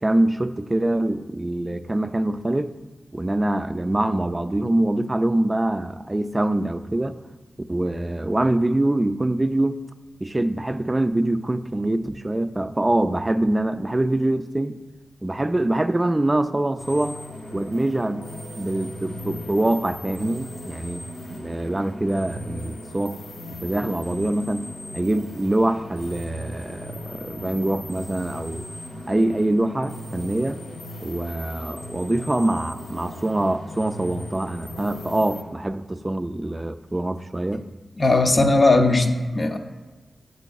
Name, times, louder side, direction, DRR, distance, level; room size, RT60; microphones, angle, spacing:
voice 1, 0.0-2.7 3.1-7.2 7.7-9.8 10.2-14.8 15.2-17.2 17.5-18.3 18.6-21.0 21.3-23.2 23.6-24.6 24.9-28.7 29.1-30.6 31.0-37.6, right 1 dB, 25° right, 11 dB, 0.3 m, -24 dB
sound 1, 16.8-35.4, left 1 dB, 80° left, 1.1 m, -38 dB
voice 2, 38.0-39.6, left 2 dB, 45° left, 4 dB, 0.5 m, -18 dB
7.9 x 6.2 x 2.3 m, 1.2 s
cardioid pair, 45°, 0 cm